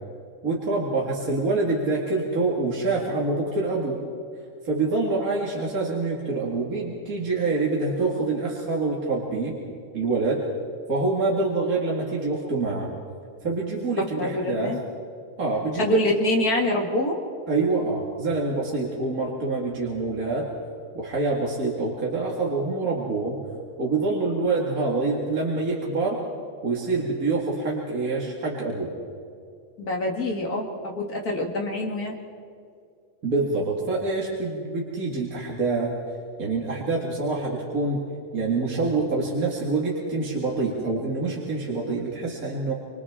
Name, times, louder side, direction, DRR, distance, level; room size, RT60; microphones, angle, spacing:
voice 1, 0.4-4.0 4.6-9.6 9.9-10.4 10.9-12.9 13.4-14.7 15.4-16.0 17.5-20.5 20.9-23.4 23.8-26.2 26.6-28.9 33.2-35.9 36.4-38.0 38.3-42.7, right 3 dB, 70° right, -3 dB, 2.7 m, -26 dB
voice 2, 14.0-14.8 15.7-17.2 29.8-32.2, left 1 dB, 80° left, 0 dB, 2.9 m, -25 dB
28.0 x 26.0 x 3.7 m, 2.3 s
omnidirectional pair, 1.6 m